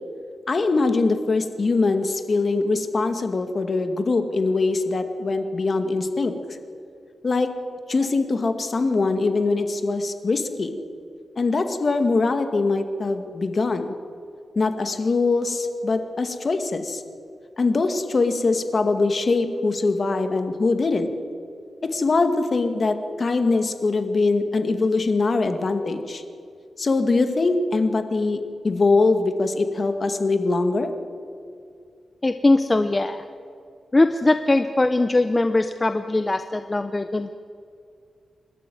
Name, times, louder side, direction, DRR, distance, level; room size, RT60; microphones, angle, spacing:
voice 1, 0.5-6.3 7.2-7.5 7.9-10.8 11.4-14.0 14.6-17.0 17.6-21.1 21.8-26.2 26.8-30.9, left 3 dB, 45° left, 7 dB, 2.1 m, -22 dB
voice 2, 32.2-33.2 33.9-37.4, left 2 dB, 25° left, 9 dB, 0.8 m, -21 dB
28.5 x 12.5 x 9.4 m, 2.4 s
wide cardioid pair, 95°, 0 cm